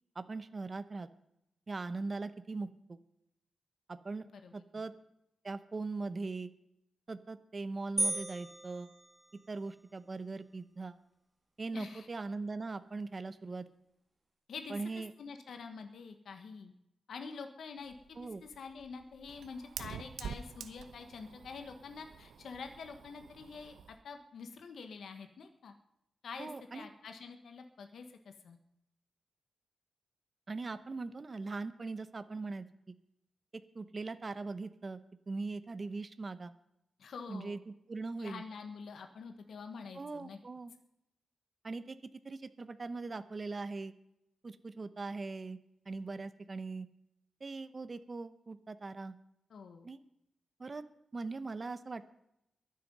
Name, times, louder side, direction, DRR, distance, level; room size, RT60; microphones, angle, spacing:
voice 1, 0.1-1.1 1.7-3.0 3.9-4.3 4.5-4.9 5.4-6.5 7.1-8.9 9.5-11.0 11.6-13.7 14.7-15.1 18.2-18.4 26.4-26.9 30.5-32.7 33.5-35.0 35.3-36.5 37.3-38.4 39.9-40.7 41.6-42.0 42.2-43.9 44.4-45.6 45.9-46.9 47.4-49.2 49.8-50.0 50.6-50.8 51.1-52.0, right 3 dB, 35° right, 11 dB, 0.8 m, -40 dB
sound 1, 8.0-9.8, right 3 dB, 15° right, 1.8 m, -36 dB
voice 2, 11.7-12.1 14.5-14.8 15.2-16.7 17.1-23.7 24.0-25.7 26.2-28.6 37.0-37.6 38.2-40.4 49.5-49.9, left 5 dB, 75° left, 6 dB, 1.3 m, -47 dB
Fire, 17.8-24.0, right 7 dB, 85° right, 0.9 m, -48 dB
22.5 x 7.7 x 5.5 m, 0.82 s
wide cardioid pair, 110°, 0 cm